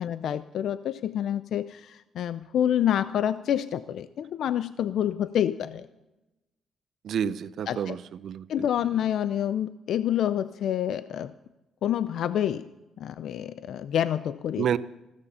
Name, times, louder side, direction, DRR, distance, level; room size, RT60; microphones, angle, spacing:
voice 1, 0.0-5.9 7.7-8.0 8.5-11.3 11.8-12.7 13.0-14.7, left 10 dB, 70° left, 14 dB, 0.5 m, -28 dB
voice 2, 7.0-8.7 14.6-14.8, right 8 dB, 65° right, 15 dB, 0.6 m, -29 dB
15.0 x 13.5 x 5.6 m, 0.99 s
cardioid pair, 90°, 0 cm